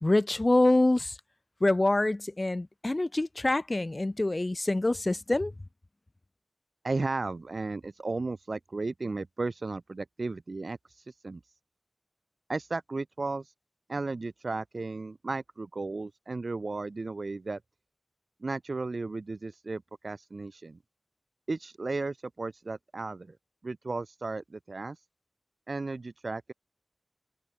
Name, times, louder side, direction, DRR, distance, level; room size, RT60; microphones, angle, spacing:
voice 1, 0.0-1.2 1.6-5.5, left 2 dB, 40° left, 2.2 m, -25 dB
voice 2, 6.8-11.5 12.5-13.5 13.9-17.6 18.4-20.8 21.5-23.4 23.6-25.0 25.7-26.5, right 3 dB, 75° right, 6.5 m, -35 dB
wide cardioid pair, 65°, 0 cm